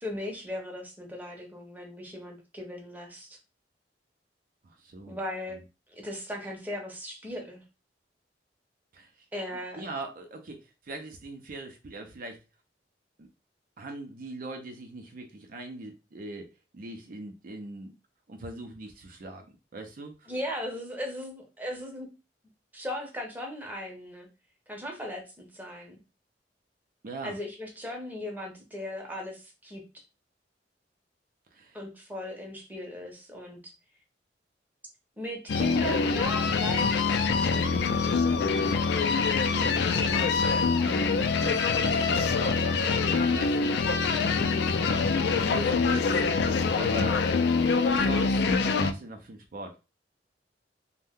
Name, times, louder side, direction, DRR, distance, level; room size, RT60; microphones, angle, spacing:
voice 1, 0.0-3.4 5.1-5.6 5.9-7.6 9.3-9.8 20.3-22.1 22.7-24.3 24.7-25.9 27.2-29.8 31.7-33.7 35.2-39.3, equal, 10° right, 0.7 m, -38 dB
voice 2, 4.6-5.2 5.5-5.6 8.9-9.3 9.7-12.4 13.2-13.3 13.8-17.9 18.3-19.5 19.7-20.3 27.0-27.4 31.5-31.8 37.9-38.3 39.5-40.3 40.6-40.9 41.4-43.8 44.4-46.3 46.8-47.2 47.9-49.8, right 2 dB, 50° right, 0.5 m, -41 dB
sound 1, 35.5-48.9, left 4 dB, 65° left, 0.3 m, -25 dB
2.6 x 2.1 x 3.5 m
head